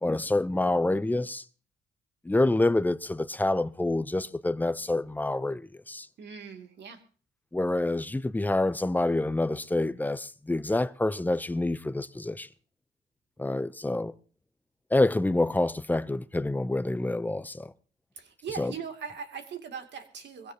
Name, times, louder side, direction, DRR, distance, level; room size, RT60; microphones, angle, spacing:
voice 1, 0.0-1.4 2.2-6.1 7.5-12.5 13.4-14.1 14.9-17.7 18.6-18.7, left 2 dB, 10° left, 0.6 m, -27 dB
voice 2, 6.2-7.0 18.2-20.5, right 6 dB, 60° right, 2.7 m, -40 dB
22.5 x 16.0 x 2.9 m
cardioid pair, 90°, 20 cm